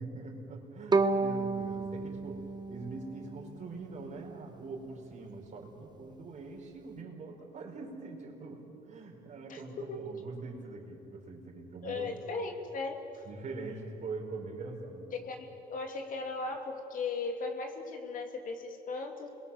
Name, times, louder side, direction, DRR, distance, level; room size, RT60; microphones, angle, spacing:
voice 1, 0.0-12.1 13.2-15.1, right 3 dB, 45° right, 1 dB, 5.0 m, -43 dB
Bowed string instrument, 0.9-4.0, right 3 dB, 25° right, 1.2 m, -31 dB
voice 2, 9.5-10.1 11.8-13.1 15.1-19.3, left 3 dB, 55° left, 4 dB, 2.8 m, -37 dB
29.0 x 22.5 x 7.3 m, 3.0 s
cardioid pair, 110°, 17 cm